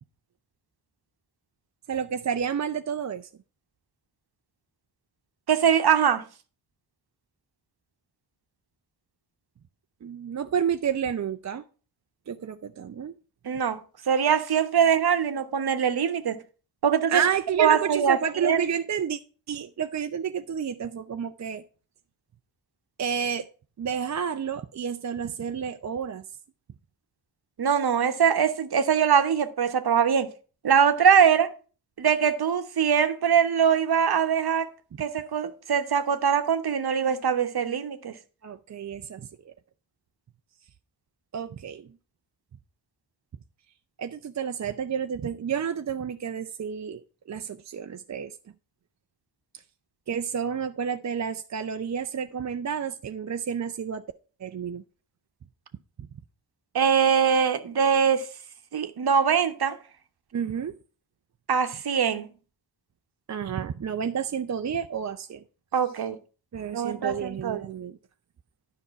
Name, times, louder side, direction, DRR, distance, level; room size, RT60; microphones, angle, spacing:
voice 1, 1.9-3.3 10.0-11.6 12.3-13.1 17.1-19.2 19.5-21.6 23.0-23.5 23.8-26.2 38.4-39.5 41.3-41.9 44.0-47.0 47.3-48.4 50.1-54.0 54.4-54.8 60.3-60.8 63.3-65.4 66.5-68.0, right 7 dB, 35° right, 0.6 m, -30 dB
voice 2, 5.5-6.2 13.4-13.8 14.1-16.4 16.8-17.2 17.6-18.2 18.4-18.6 27.6-30.3 30.6-31.5 32.0-34.7 35.0-38.1 56.7-58.3 58.7-59.8 61.5-62.3 65.7-66.2 66.7-67.7, right 7 dB, 50° right, 1.1 m, -22 dB
10.0 x 5.4 x 5.7 m
supercardioid pair, 40°, 48 cm